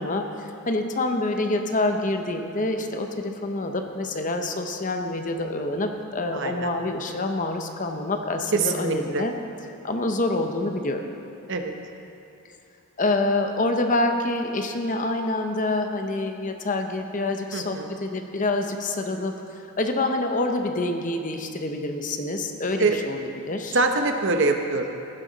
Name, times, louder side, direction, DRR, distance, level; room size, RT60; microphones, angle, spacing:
voice 1, 0.0-9.3 9.8-11.0 13.0-23.2 23.5-23.8, left 2 dB, 35° left, 5 dB, 0.8 m, -27 dB
voice 2, 6.3-6.7 8.5-9.2 11.5-11.7 17.5-17.9 22.8-23.0 23.7-24.9, right 3 dB, 55° right, 4 dB, 0.9 m, -24 dB
15.5 x 11.5 x 4.0 m, 2.7 s
head